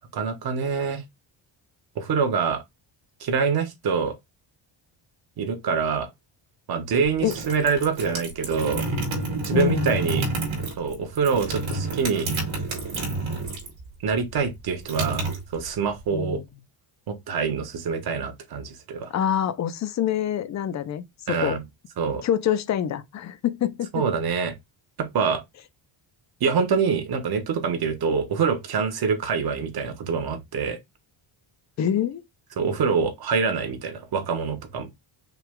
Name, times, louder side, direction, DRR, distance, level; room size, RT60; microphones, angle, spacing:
voice 1, 0.1-1.0 2.0-2.6 3.2-4.1 5.4-6.1 6.7-8.8 9.4-10.3 10.8-12.3 14.0-16.4 17.1-19.1 21.3-21.6 22.0-22.2 23.9-24.5 25.0-25.4 26.4-30.8 32.6-34.9, right 5 dB, 50° right, 1.1 m, -25 dB
sound 1, 7.3-13.8 14.1-16.0, right 2 dB, 75° right, 2.7 m, -29 dB
voice 2, 9.5-9.9 16.1-16.4 19.1-21.6 22.2-24.0 31.8-32.2, left 10 dB, 40° left, 0.4 m, -26 dB
5.7 x 2.3 x 3.5 m
cardioid pair, 180°, 48 cm